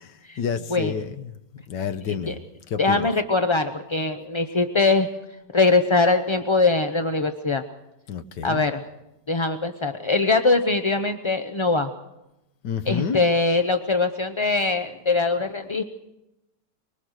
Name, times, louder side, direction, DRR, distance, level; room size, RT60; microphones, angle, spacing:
voice 1, 0.0-3.1 8.1-8.7 12.6-13.2, left 7 dB, 80° left, 10 dB, 1.7 m, -30 dB
voice 2, 2.8-5.1 5.5-7.6 8.4-8.8 9.3-11.9 12.9-15.8, left 3 dB, 30° left, 7 dB, 0.5 m, -22 dB
24.0 x 22.0 x 6.5 m, 0.91 s
omnidirectional pair, 1.8 m